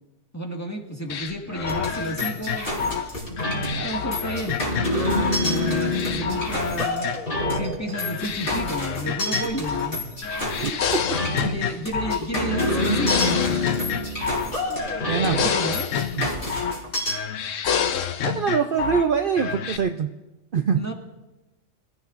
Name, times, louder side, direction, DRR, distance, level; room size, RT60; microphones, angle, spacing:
voice 1, 0.3-2.9 3.7-4.7 5.4-7.1 7.5-10.0 10.6-10.8 11.4-13.9 14.7-14.8 15.2-15.9 20.8-20.9, right 1 dB, 15° left, 0 dB, 1.9 m, -31 dB
sound 1, 1.1-5.4 5.6-7.6 7.9-10.0 10.2-12.2 12.5-14.5 14.8-16.8 17.1-19.1 19.4-19.8, left 7 dB, 90° left, 1.1 m, -28 dB
sound 2, 1.7-17.2, left 1 dB, 45° left, 4.0 m, -28 dB
voice 2, 15.1-15.5 16.2-16.3 18.2-20.1 20.5-20.8, right 6 dB, 55° right, 6 dB, 0.7 m, -23 dB
26.0 x 15.5 x 2.6 m, 1.0 s
omnidirectional pair, 1.3 m